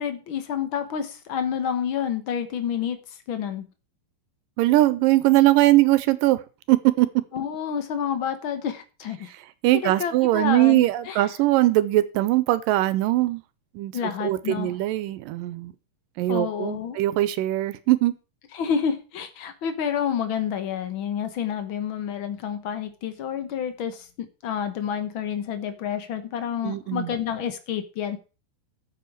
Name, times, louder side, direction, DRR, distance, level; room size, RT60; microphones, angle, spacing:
voice 1, 0.0-3.7 7.3-9.3 9.8-11.3 13.9-14.8 16.3-17.0 18.5-28.2, left 8 dB, 75° left, 1.1 m, -29 dB
voice 2, 4.6-6.4 6.7-7.1 9.6-13.4 13.8-13.9 14.2-15.7 16.2-18.1 26.6-27.1, right 16 dB, 90° right, 2.4 m, -21 dB
12.5 x 7.6 x 4.7 m
omnidirectional pair, 3.9 m